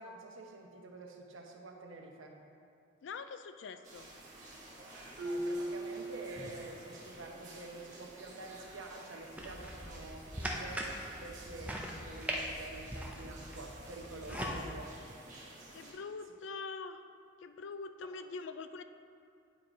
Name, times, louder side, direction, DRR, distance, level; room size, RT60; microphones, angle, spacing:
voice 1, 0.0-2.4 5.2-10.9 11.2-14.9 18.0-18.1, right 2 dB, 85° right, 2 dB, 0.9 m, -48 dB
voice 2, 3.0-4.1 14.3-14.7 15.7-17.0 17.4-18.8, left 4 dB, 65° left, 10 dB, 0.4 m, -44 dB
sound 1, 3.8-15.9, right 2 dB, 40° right, 1.6 m, -53 dB
Marimba xylophone, 5.2-6.9, right 1 dB, 55° right, 0.8 m, -39 dB
sound 2, 9.4-14.6, equal, 5° right, 0.6 m, -41 dB
9.3 x 4.7 x 3.9 m, 2.5 s
head